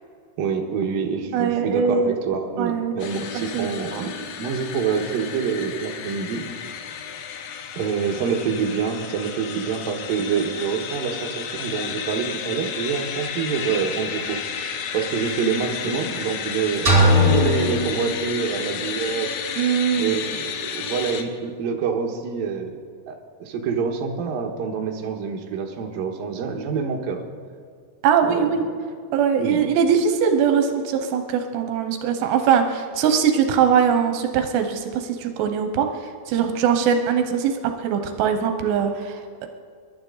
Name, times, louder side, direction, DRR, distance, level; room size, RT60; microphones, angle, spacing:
voice 1, 0.4-6.4 7.8-14.4 14.9-19.3 20.0-22.7 23.1-27.2 28.2-28.5 29.4-29.6, right 6 dB, 65° right, 1 dB, 2.8 m, -26 dB
voice 2, 1.3-2.2 2.6-3.2 3.5-3.7 3.9-4.0 19.6-20.2 28.0-28.6 29.1-37.5 37.8-39.5, right 7 dB, 85° right, 6 dB, 3.1 m, -21 dB
sound 1, 3.0-21.2, left 8 dB, 75° left, 3.0 m, -32 dB
sound 2, 16.9-18.8, left 1 dB, 20° right, 3.9 m, -19 dB
27.5 x 12.0 x 3.9 m, 2.1 s
omnidirectional pair, 4.8 m